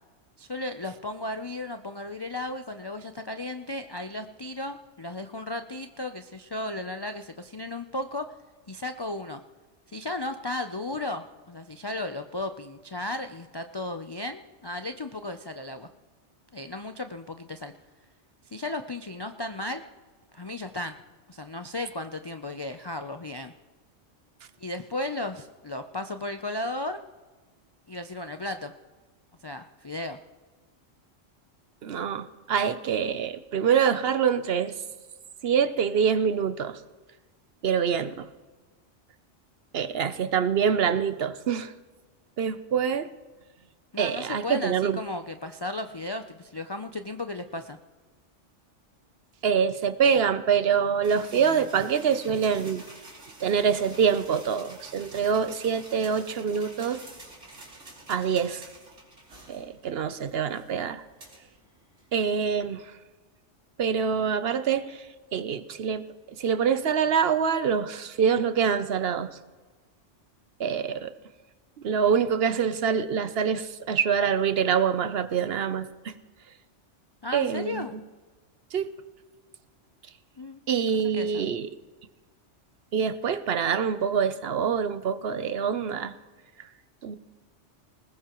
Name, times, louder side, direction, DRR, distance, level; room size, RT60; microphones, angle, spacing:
voice 1, 0.4-8.3 8.7-9.4 9.9-15.9 16.5-17.7 18.5-19.8 20.3-21.0 21.3-23.5 24.6-27.0 27.9-28.7 29.4-30.2 43.9-47.8 51.4-51.6 77.2-77.9 80.4-80.6 81.1-81.4, left 2 dB, 45° left, 7 dB, 0.3 m, -35 dB
voice 2, 31.8-34.7 35.4-36.8 37.6-38.3 39.7-41.7 42.4-43.1 44.0-45.0 49.4-52.8 53.4-57.0 58.1-58.7 59.5-61.0 62.1-62.9 63.8-65.1 65.3-66.0 66.4-69.4 70.6-71.1 71.8-76.1 77.3-77.9 78.7-78.9 80.7-81.7 82.9-86.1 87.0-87.2, right 7 dB, 60° right, 12 dB, 0.8 m, -25 dB
sound 1, 51.0-62.7, right 2 dB, 90° right, 3.3 m, -49 dB
20.0 x 20.0 x 3.0 m, 1.3 s
omnidirectional pair, 1.2 m